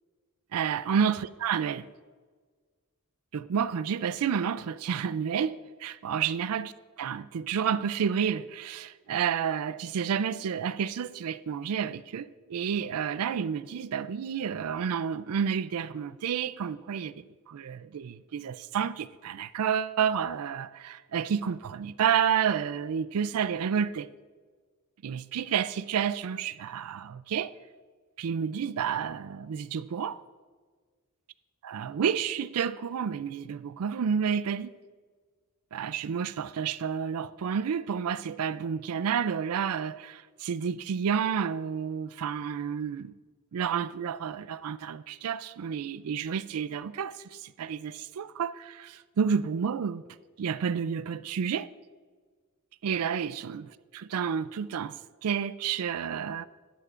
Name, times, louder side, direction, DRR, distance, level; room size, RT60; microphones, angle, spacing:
voice 1, 0.5-1.9 3.3-6.7 7.0-24.1 25.0-27.5 28.2-30.2 31.6-34.7 35.7-43.1 43.5-50.0 50.4-51.7 52.8-55.0 55.2-56.5, right 7 dB, 80° right, 0.4 m, -30 dB
12.5 x 11.5 x 2.5 m
head